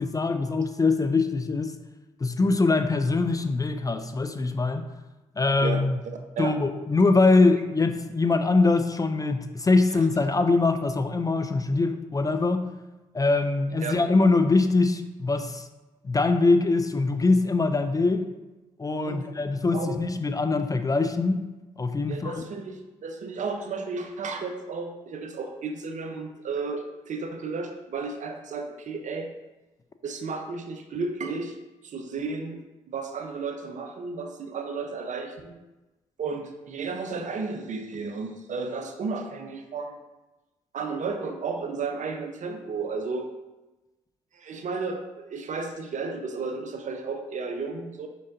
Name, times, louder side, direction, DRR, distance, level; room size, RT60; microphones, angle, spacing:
voice 1, 0.0-1.7 2.2-4.9 5.4-6.0 6.4-12.7 13.1-15.7 16.0-18.3 18.8-21.4 21.8-22.4, left 3 dB, 25° left, 8 dB, 0.4 m, -23 dB
voice 2, 22.1-29.3 30.0-31.6 31.8-32.6 32.9-35.5 36.2-40.0 40.7-43.3 44.3-48.1, right 4 dB, 55° right, 5 dB, 0.6 m, -33 dB
5.3 x 3.7 x 2.5 m, 1.1 s
hypercardioid pair, 45°, 15 cm